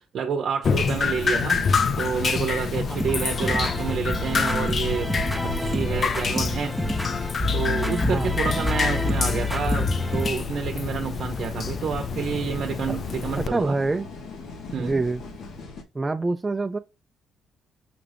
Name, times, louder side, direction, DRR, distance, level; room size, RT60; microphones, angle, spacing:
voice 1, 0.0-1.6 2.0-5.1 5.4-6.7 7.5-13.7 14.7-15.0, right 6 dB, 60° right, 0.7 m, -29 dB
Drip, 0.6-13.5, left 5 dB, 50° left, 0.4 m, -28 dB
sound 1, 0.8-15.8, left 2 dB, 70° left, 1.0 m, -37 dB
sound 2, 3.0-10.3, left 2 dB, 5° left, 0.7 m, -28 dB
voice 2, 8.0-8.3 12.9-13.0 13.4-14.1 14.8-15.2 15.9-16.8, right 3 dB, 20° right, 0.3 m, -26 dB
5.8 x 2.5 x 3.2 m
cardioid pair, 90°, 0 cm